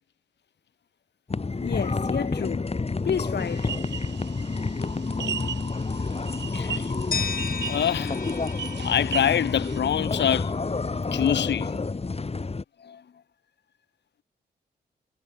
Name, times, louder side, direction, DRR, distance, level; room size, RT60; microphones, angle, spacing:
sound 1, 1.3-12.6, left 3 dB, 35° left, 3.4 m, -29 dB
voice 1, 1.6-2.7 3.1-3.7 12.8-13.0, left 7 dB, 75° left, 3.6 m, -30 dB
sound 2, 3.4-9.8, right 8 dB, 85° right, 4.5 m, -38 dB
voice 2, 6.5-6.9 7.5-8.3 8.8-10.6 11.1-12.2, left 9 dB, 90° left, 4.9 m, -26 dB
sound 3, 7.1-10.0, left 5 dB, 55° left, 4.6 m, -35 dB
cardioid pair, 70°, 18 cm